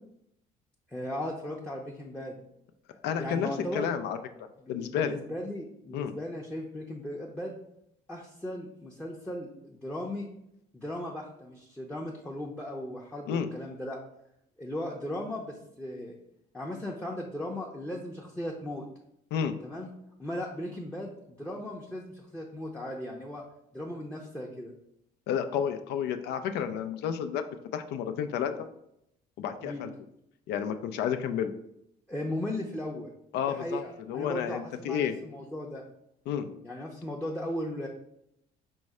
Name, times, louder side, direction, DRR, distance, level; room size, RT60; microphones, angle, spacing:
voice 1, 0.9-2.4 3.1-3.9 4.6-7.6 8.1-10.3 10.7-14.0 14.6-16.1 16.5-18.9 19.6-19.9 20.2-23.4 23.7-24.7 29.6-29.9 32.1-33.1 33.5-35.8 36.6-37.9, left 1 dB, 10° left, -2 dB, 0.6 m, -37 dB
voice 2, 3.0-3.5 3.7-4.2 4.7-5.1 5.9-6.2 13.3-13.5 19.3-19.5 25.3-27.4 27.7-28.7 29.4-29.9 30.5-31.5 33.3-35.1 36.3-36.5, left 8 dB, 80° left, 8 dB, 0.5 m, -31 dB
5.3 x 2.1 x 4.7 m, 0.78 s
cardioid pair, 110°, 17 cm